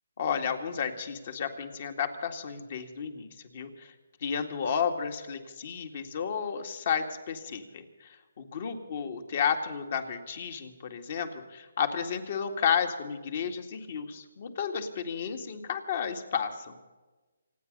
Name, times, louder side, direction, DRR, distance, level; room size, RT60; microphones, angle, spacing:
voice 1, 0.2-3.3 3.5-3.9 4.2-8.1 8.4-16.7, left 7 dB, 50° left, 6 dB, 2.1 m, -32 dB
27.5 x 9.6 x 5.4 m, 1.2 s
hypercardioid pair, 150°, 0 cm